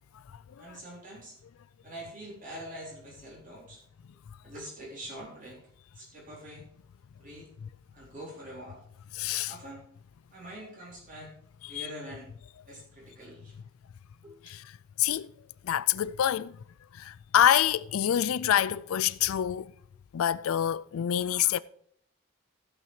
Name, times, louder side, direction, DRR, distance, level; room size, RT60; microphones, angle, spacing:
voice 1, 0.6-1.4 1.8-3.8 4.4-5.6 5.9-6.7 7.2-7.5 7.9-8.8 9.4-9.8 10.3-11.3 11.7-12.3 12.7-13.5 14.2-14.4, right 1 dB, 40° right, 4.2 m, -44 dB
voice 2, 9.1-9.5 11.6-11.9 14.4-14.6 15.0-15.3 15.6-16.6 16.9-19.7 20.1-21.6, left 10 dB, 85° left, 0.4 m, -26 dB
15.5 x 6.0 x 4.9 m
head